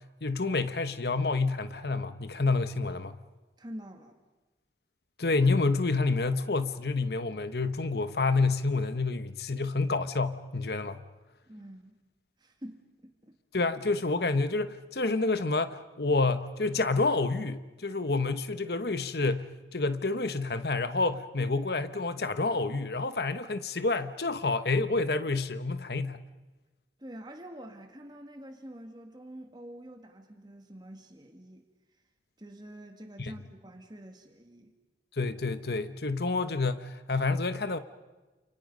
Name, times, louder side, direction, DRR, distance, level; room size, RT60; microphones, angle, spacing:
voice 1, 0.0-3.2 5.2-11.0 13.5-26.2 33.2-33.3 35.1-37.8, left 3 dB, 60° left, 1.1 m, -28 dB
voice 2, 3.6-4.2 11.5-12.0 12.4-13.4 27.0-31.7 32.4-34.7, right 1 dB, 25° right, 2.0 m, -46 dB
29.5 x 29.5 x 5.4 m
head